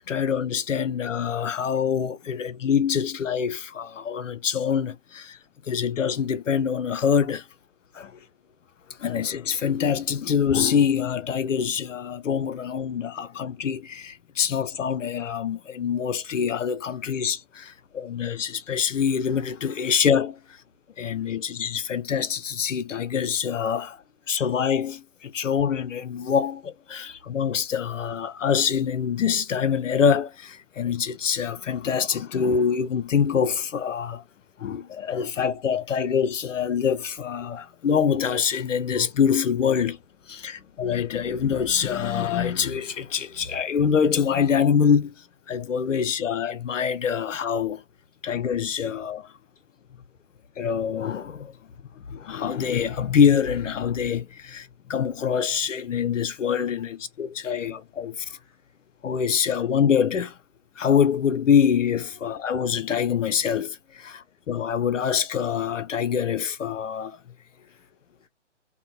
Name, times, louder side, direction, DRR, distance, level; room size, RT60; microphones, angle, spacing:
voice 1, 0.1-5.4 5.7-7.5 7.9-8.2 9.0-20.4 21.0-24.0 24.3-34.2 34.6-40.0 40.3-45.1 45.5-47.8 48.2-49.3 50.6-51.5 52.0-58.4 59.0-60.4 60.8-67.2, left 7 dB, 85° left, 0.5 m, -25 dB
voice 2, 58.2-58.7 59.4-59.6 64.0-64.4 67.6-68.3, left 6 dB, 30° left, 0.5 m, -65 dB
2.6 x 2.0 x 2.5 m
figure-of-eight pair, 140°, 37 cm